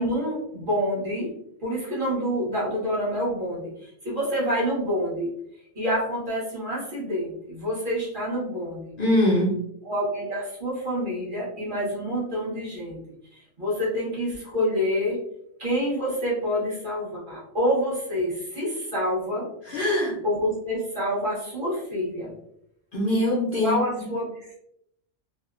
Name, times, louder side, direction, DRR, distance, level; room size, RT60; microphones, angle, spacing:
voice 1, 0.0-1.3 1.6-5.3 5.7-8.9 9.8-13.0 13.3-15.2 15.6-19.5 20.2-22.3 23.6-24.3, equal, 45° right, -7 dB, 1.1 m, -27 dB
voice 2, 9.0-9.6 19.6-20.2 22.9-23.8, left 1 dB, 55° left, -4 dB, 0.6 m, -22 dB
2.7 x 2.1 x 2.4 m, 0.75 s
omnidirectional pair, 1.3 m